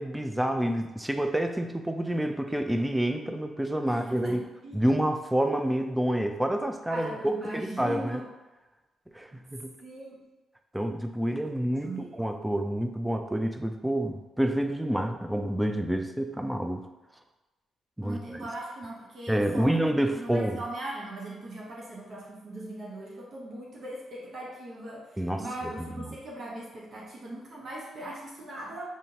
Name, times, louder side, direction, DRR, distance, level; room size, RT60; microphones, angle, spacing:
voice 1, 0.0-4.4 4.7-7.1 7.5-8.2 9.1-9.7 10.7-16.9 18.0-18.2 19.3-20.6 25.2-26.0, right 1 dB, 5° right, 6 dB, 0.4 m, -28 dB
voice 2, 3.9-4.8 6.9-8.3 9.8-10.2 11.8-12.2 18.0-19.7 20.1-28.8, right 1 dB, 60° right, -4 dB, 1.0 m, -39 dB
3.8 x 3.1 x 2.9 m, 1.1 s
supercardioid pair, 55°, 0 cm